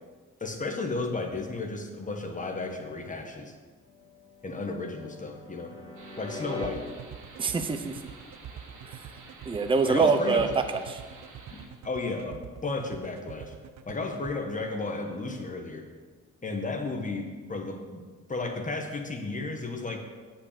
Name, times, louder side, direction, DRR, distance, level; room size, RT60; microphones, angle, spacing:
voice 1, 0.4-3.5 4.4-5.7 6.2-6.8 9.8-10.5 11.5-13.5 13.9-15.9 16.4-18.0 18.3-20.0, left 3 dB, 25° left, 4 dB, 1.4 m, -33 dB
sound 1, 3.8-6.7 9.6-10.9, left 3 dB, 45° left, 2.3 m, -44 dB
sound 2, 6.0-11.7, right 3 dB, 80° right, 2.0 m, -50 dB
sound 3, 6.6-14.3, right 10 dB, 60° right, 0.7 m, -44 dB
voice 2, 7.4-8.0 8.9-9.0 9.5-11.0, right 4 dB, 15° right, 7 dB, 0.6 m, -25 dB
8.3 x 5.8 x 6.9 m, 1.5 s
cardioid pair, 90°, 30 cm